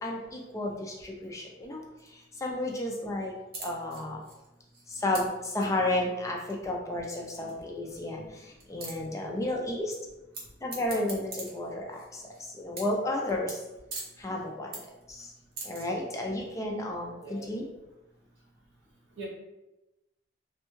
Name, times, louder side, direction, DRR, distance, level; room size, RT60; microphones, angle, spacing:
voice 1, 0.0-1.8 2.4-3.3 3.6-4.2 5.0-8.2 8.7-9.9 10.6-12.0 12.6-13.6 14.2-14.7 15.1-15.2 15.7-17.7, left 1 dB, 15° left, -1 dB, 0.3 m, -32 dB
sound 1, 2.0-2.5 2.7-2.9 3.2-3.3 3.5-5.2 5.6-5.7 6.5-6.6 7.1-7.2 7.5-7.6 7.8-7.9 8.3-8.4 8.6-8.9 10.3-10.4 10.7-12.4 12.7-13.0 13.3-13.6 13.9-14.1 14.4-15.0 15.3-15.8, right 3 dB, 50° right, 0.8 m, -40 dB
voice 2, 7.3-7.5 8.1-8.3 9.2-9.4 13.9-14.0 17.2-17.5 19.2-19.3, right 1 dB, 80° right, -3 dB, 1.0 m, -44 dB
3.4 x 2.2 x 3.0 m, 0.99 s
head